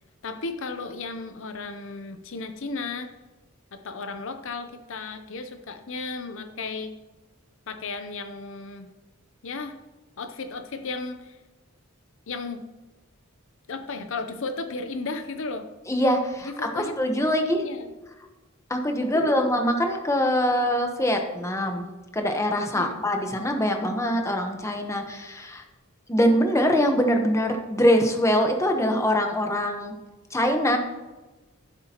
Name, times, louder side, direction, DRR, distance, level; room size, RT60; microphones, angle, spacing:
voice 1, 0.2-3.1 3.7-6.9 7.7-8.9 9.4-9.8 10.2-11.4 12.3-12.6 13.7-15.7 16.4-16.9 17.6-17.9 19.0-19.5 22.7-23.0, left 3 dB, 65° left, 8 dB, 0.7 m, -34 dB
voice 2, 15.9-17.6 18.7-21.8 22.1-25.6 26.1-29.9 30.3-30.8, equal, 15° left, 4 dB, 1.1 m, -23 dB
15.0 x 7.7 x 3.0 m, 1.1 s
head